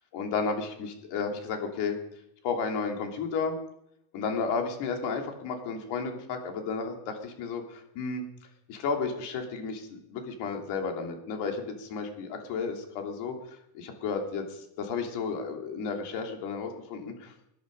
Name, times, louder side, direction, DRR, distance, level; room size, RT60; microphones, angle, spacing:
voice 1, 0.1-1.9 2.4-3.6 4.1-8.2 8.7-13.3 13.7-17.3, left 5 dB, 65° left, 3 dB, 3.2 m, -32 dB
20.0 x 10.5 x 5.4 m, 0.78 s
cardioid pair, 150°, 44 cm